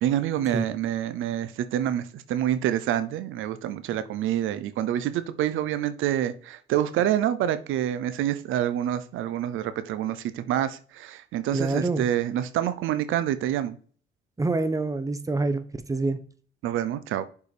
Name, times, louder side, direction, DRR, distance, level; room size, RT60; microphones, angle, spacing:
voice 1, 0.0-13.8 16.6-17.3, right 11 dB, 85° right, 0.7 m, -27 dB
voice 2, 11.5-12.1 14.4-16.2, right 3 dB, 15° right, 1.0 m, -26 dB
6.9 x 4.8 x 4.9 m
cardioid pair, 90°, 20 cm